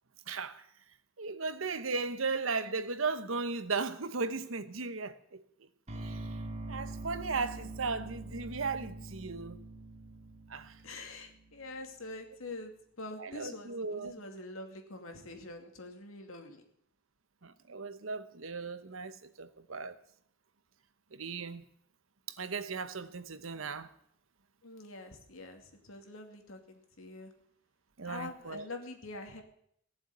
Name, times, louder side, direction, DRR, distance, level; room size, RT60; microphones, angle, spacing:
voice 1, 0.3-0.6 1.2-5.4 6.0-6.2 6.7-9.6 10.5-10.7 13.2-14.1 17.4-19.9 21.1-21.6 22.4-23.9 28.0-28.6, right 4 dB, 75° right, 1.1 m, -36 dB
sound 1, 5.9-11.9, right 2 dB, 35° right, 2.1 m, -44 dB
voice 2, 10.8-16.6 24.6-27.3 28.0-29.4, left 2 dB, 90° left, 2.5 m, -45 dB
17.5 x 7.4 x 9.5 m
head